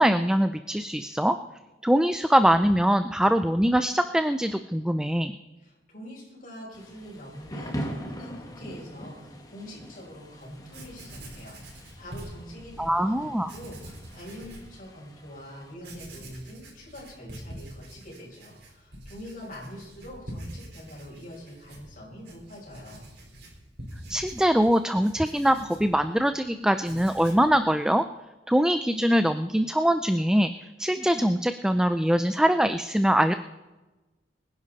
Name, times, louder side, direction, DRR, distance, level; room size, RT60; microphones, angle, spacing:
voice 1, 0.0-1.4 1.8-5.4 12.8-13.5 24.1-28.0 28.5-30.5 30.8-33.3, equal, 5° right, 9 dB, 0.4 m, -23 dB
voice 2, 5.6-23.1, equal, 50° left, -4 dB, 6.1 m, -44 dB
Thunder / Rain, 6.7-15.7, equal, 20° left, 1.8 m, -42 dB
Writing, 10.4-10.5 10.7-12.9 13.4-14.7 15.2-15.3 15.8-26.4 26.7-27.5, right 1 dB, 70° right, 4.3 m, -45 dB
24.0 x 10.5 x 4.2 m, 1.1 s
head